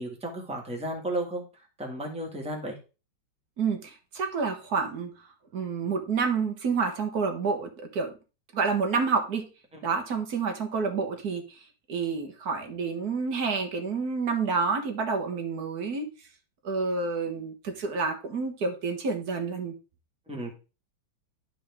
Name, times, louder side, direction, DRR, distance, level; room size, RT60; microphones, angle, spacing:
voice 1, 0.0-1.4 1.8-2.8 9.7-9.8 20.3-20.5, right 1 dB, 5° right, 1 dB, 1.6 m, -33 dB
voice 2, 3.6-5.1 5.5-8.1 8.5-9.5 9.8-11.4 11.9-16.1 16.6-19.7, right 5 dB, 55° right, 4 dB, 1.7 m, -29 dB
11.5 x 4.7 x 3.5 m, 0.31 s
omnidirectional pair, 2.1 m